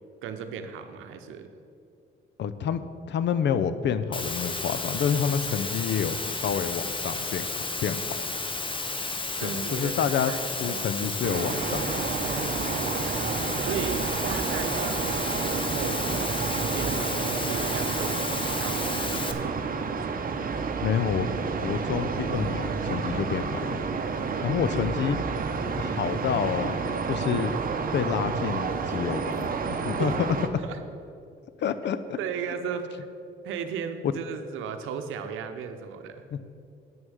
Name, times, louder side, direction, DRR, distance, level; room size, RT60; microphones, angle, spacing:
voice 1, 0.2-1.5 9.4-11.1 12.2-18.3 18.6-19.6 24.1-24.6 30.0-30.2 30.6-30.8 32.2-33.1 33.4-36.2, right 6 dB, 80° right, 7 dB, 0.8 m, -36 dB
voice 2, 2.4-2.8 3.1-8.2 9.4-10.3 10.6-12.1 20.8-21.3 21.6-23.8 24.4-25.2 25.8-26.8 27.1-27.5 27.9-30.3 31.6-32.2 36.3-36.4, left 8 dB, 60° left, 13 dB, 0.6 m, -28 dB
Water, 4.1-19.3, left 3 dB, 25° left, 0.9 m, -32 dB
sound 1, 11.2-30.5, right 5 dB, 45° right, 0.8 m, -30 dB
8.9 x 6.3 x 6.2 m, 2.4 s
supercardioid pair, 60°, 20 cm